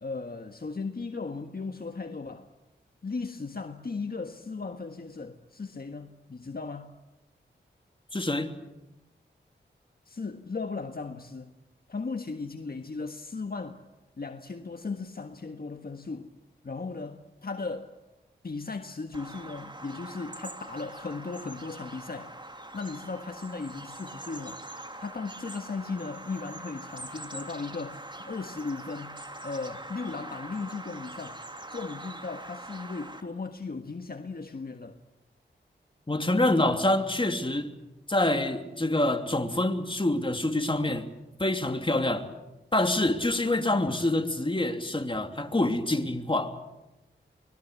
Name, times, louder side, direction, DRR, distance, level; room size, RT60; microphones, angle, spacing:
voice 1, 0.0-2.5 3.0-6.9 10.0-11.5 11.9-13.8 14.2-16.3 16.6-17.9 18.4-22.4 22.7-24.6 25.0-31.4 31.7-35.0, left 4 dB, 50° left, 6 dB, 1.6 m, -37 dB
voice 2, 8.1-8.5 36.1-37.7 38.1-41.1 41.4-42.3 42.7-46.5, left 1 dB, 25° left, 5 dB, 3.0 m, -26 dB
Bird vocalization bird call bird song, 19.1-33.2, right 1 dB, 25° right, 3.0 m, -43 dB
24.5 x 21.0 x 8.3 m, 1.0 s
cardioid pair, 45°, 20 cm